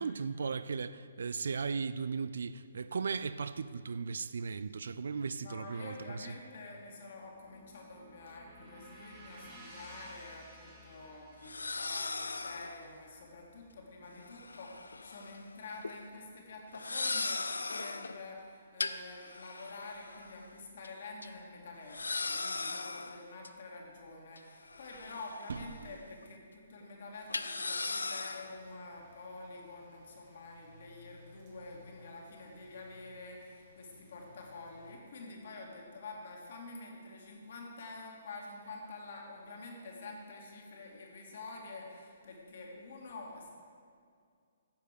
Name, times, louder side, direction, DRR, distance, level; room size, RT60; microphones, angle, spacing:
voice 1, 0.0-6.3 25.5-25.6, right 5 dB, 65° right, 0.3 m, -36 dB
voice 2, 5.4-43.5, left 3 dB, 55° left, 2.1 m, -48 dB
sound 1, 7.0-15.0, right 1 dB, 20° right, 2.4 m, -56 dB
sound 2, 9.8-9.9 11.4-12.9 14.3-15.4 15.7-15.9 16.7-18.2 18.8-20.4 20.8-20.9 21.2-21.3 21.9-23.5 24.4-25.8 26.1-26.2 27.3-28.6, left 3 dB, 80° left, 0.4 m, -38 dB
sound 3, 28.2-35.0, equal, 40° right, 2.1 m, -60 dB
9.5 x 6.7 x 6.6 m
figure-of-eight pair, 130°, 0 cm